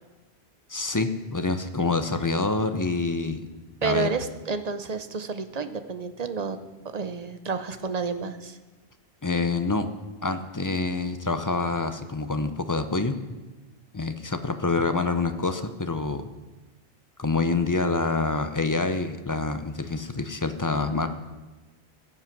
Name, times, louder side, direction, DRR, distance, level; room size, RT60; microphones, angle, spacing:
voice 1, 0.7-3.5 3.8-4.1 9.2-9.9 10.2-13.1 13.9-16.3 17.2-21.1, left 3 dB, 20° left, 8 dB, 0.6 m, -26 dB
voice 2, 3.8-6.6 6.8-8.6, right 4 dB, 40° right, 10 dB, 0.7 m, -30 dB
15.0 x 7.8 x 6.0 m, 1.2 s
omnidirectional pair, 1.1 m